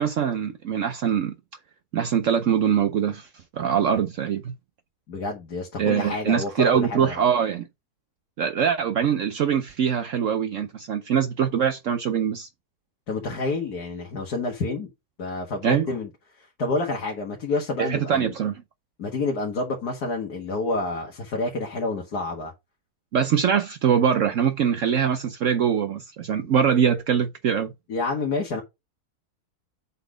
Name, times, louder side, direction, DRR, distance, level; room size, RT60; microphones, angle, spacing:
voice 1, 0.0-1.3 1.9-3.3 3.5-4.5 5.8-7.6 8.4-12.5 15.6-15.9 17.8-18.6 23.1-27.7, right 8 dB, 60° right, 0.9 m, -23 dB
voice 2, 5.1-7.2 13.1-14.9 15.2-16.1 16.4-18.3 19.0-22.5 27.9-28.6, left 3 dB, 80° left, 2.2 m, -28 dB
7.7 x 4.1 x 5.0 m
omnidirectional pair, 1.6 m